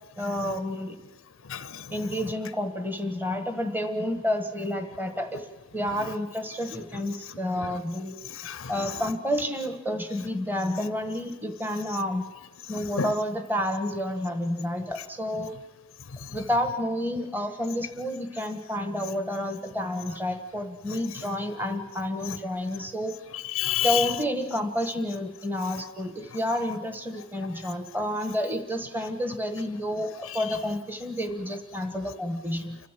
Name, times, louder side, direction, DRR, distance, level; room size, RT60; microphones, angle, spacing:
voice 1, 0.2-1.0 1.9-5.5 5.7-8.1 8.7-12.3 12.7-15.5 16.3-23.2 23.8-32.8, left 1 dB, 10° right, 1.4 m, -30 dB
voice 2, 1.5-1.8 6.0-6.1 7.6-7.7 8.3-9.0 13.0-13.1 16.2-16.4 23.3-24.1 27.6-27.7 30.2-30.6, left 10 dB, 65° left, 0.6 m, -30 dB
30.0 x 12.5 x 7.5 m
head